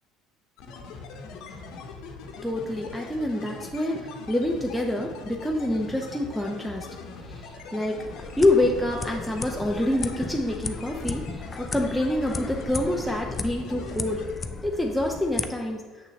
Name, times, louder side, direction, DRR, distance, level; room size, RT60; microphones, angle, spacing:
sound 1, 0.6-14.3, left 4 dB, 65° left, 1.0 m, -41 dB
voice 1, 2.4-6.9 7.2-8.0 8.4-14.2 14.6-15.8, left 1 dB, ahead, -1 dB, 0.8 m, -26 dB
sound 2, 8.0-15.5, left 3 dB, 25° left, 0.5 m, -35 dB
6.5 x 6.4 x 3.2 m, 1.5 s
hypercardioid pair, 70°, 0 cm